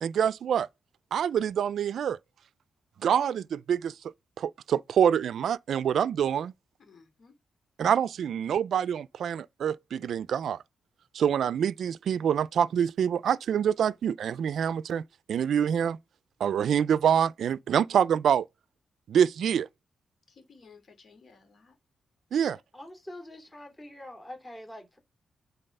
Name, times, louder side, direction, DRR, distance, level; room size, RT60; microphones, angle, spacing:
voice 1, 0.0-0.7 1.1-2.2 3.0-3.9 4.4-6.5 7.8-10.6 11.1-15.0 15.3-16.0 16.4-18.5 19.1-19.7 22.3-22.6, right 8 dB, 70° right, 0.4 m, -26 dB
voice 2, 6.8-7.3 20.3-21.8, left 5 dB, 50° left, 2.9 m, -56 dB
voice 3, 22.4-25.0, left 1 dB, 15° left, 3.1 m, -45 dB
10.0 x 4.0 x 5.4 m
wide cardioid pair, 130°, 0 cm